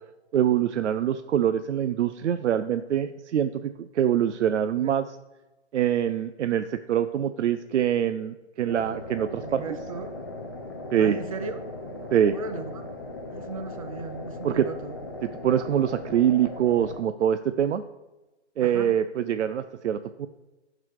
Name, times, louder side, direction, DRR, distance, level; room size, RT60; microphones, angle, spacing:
voice 1, 0.3-5.1 5.7-9.6 10.9-11.2 12.1-12.4 14.4-14.7 15.4-17.8 18.6-20.3, right 10 dB, 90° right, 10 dB, 0.5 m, -24 dB
sound 1, 8.7-17.0, left 2 dB, 20° left, 0.4 m, -38 dB
voice 2, 9.4-10.1 11.0-11.6 11.9-12.9 13.3-15.0 18.6-18.9, right 4 dB, 30° right, 8 dB, 0.6 m, -37 dB
12.0 x 4.1 x 4.6 m, 1.1 s
hypercardioid pair, 160°, 34 cm